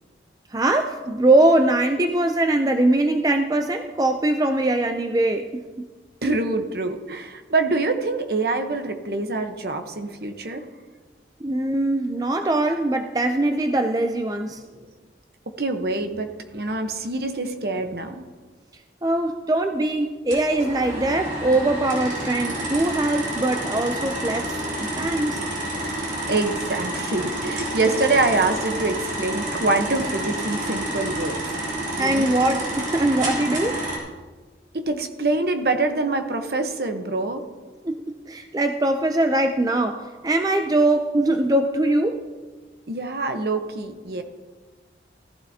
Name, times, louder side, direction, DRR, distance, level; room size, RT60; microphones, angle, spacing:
voice 1, 0.5-5.6 11.4-14.6 19.0-24.5 24.8-25.4 32.0-33.8 37.8-38.0 38.3-42.2, right 2 dB, 20° right, 5 dB, 0.4 m, -22 dB
voice 2, 6.2-10.7 15.6-18.2 26.1-31.4 32.0-32.4 34.7-37.4 42.9-44.2, right 3 dB, 60° right, 6 dB, 1.0 m, -25 dB
sound 1, 20.3-34.0, right 1 dB, 45° right, 3.4 m, -29 dB
15.5 x 14.5 x 2.8 m, 1.4 s
head